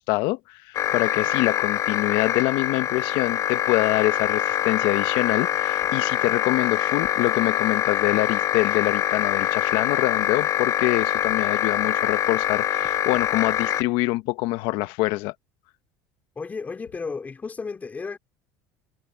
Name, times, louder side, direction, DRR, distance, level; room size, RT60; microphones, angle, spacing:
voice 1, 0.0-15.3, left 20 dB, 70° left, 1.2 m, -25 dB
sound 1, 0.7-13.8, left 11 dB, 40° left, 0.4 m, -24 dB
voice 2, 16.4-18.2, left 4 dB, 20° left, 4.0 m, -33 dB
supercardioid pair, 115°, 8 cm